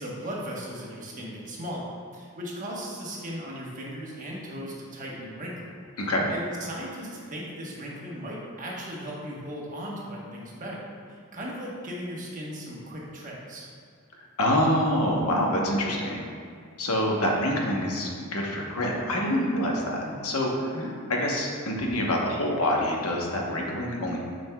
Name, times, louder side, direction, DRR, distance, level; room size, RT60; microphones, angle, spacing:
voice 1, 0.0-5.7 6.3-13.7 20.0-20.2 20.7-20.9, equal, 35° right, -4 dB, 1.1 m, -37 dB
voice 2, 14.4-16.2 16.8-20.8 21.1-24.2, left 1 dB, 75° left, -1 dB, 1.0 m, -26 dB
9.2 x 5.2 x 2.3 m, 2.2 s
head